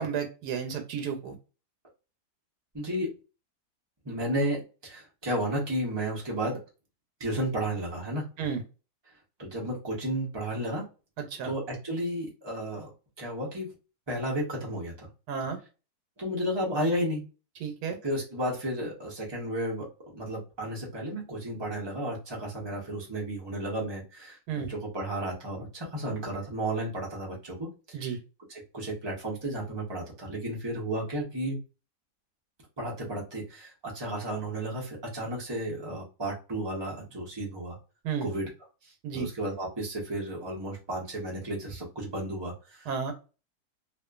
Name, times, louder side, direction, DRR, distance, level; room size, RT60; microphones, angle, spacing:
voice 1, 0.0-1.4 8.4-8.6 11.3-11.5 15.3-15.6 17.6-18.0 24.5-24.7 27.9-28.2 38.0-38.3 39.0-39.3 42.9-43.1, right 6 dB, 80° right, 6 dB, 1.2 m, -32 dB
voice 2, 2.7-3.1 4.0-6.6 7.2-8.3 9.4-10.9 11.4-12.9 13.2-13.7 14.1-15.1 16.2-17.2 18.0-28.1 28.5-31.6 32.8-37.8 38.2-38.5 38.8-42.9, right 1 dB, 30° right, -2 dB, 0.5 m, -33 dB
2.5 x 2.4 x 2.3 m, 0.33 s
omnidirectional pair, 1.7 m